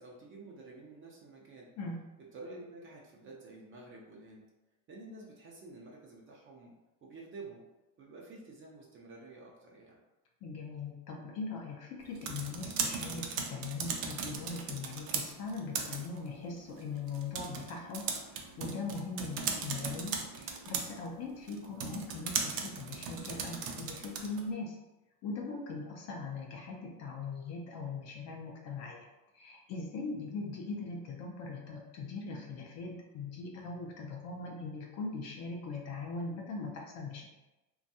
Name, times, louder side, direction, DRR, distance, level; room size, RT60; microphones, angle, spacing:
voice 1, 0.0-1.7 2.3-4.4 4.9-6.7 7.0-7.6 8.0-10.0, right 2 dB, 30° right, -2 dB, 0.4 m, -50 dB
voice 2, 10.4-24.8 25.2-29.1 29.3-37.2, left 4 dB, 35° left, 0 dB, 0.4 m, -40 dB
sound 1, 12.0-24.5, right 5 dB, 85° right, 0.6 m, -38 dB
2.5 x 2.3 x 2.6 m, 1.0 s
supercardioid pair, 100°, 46 cm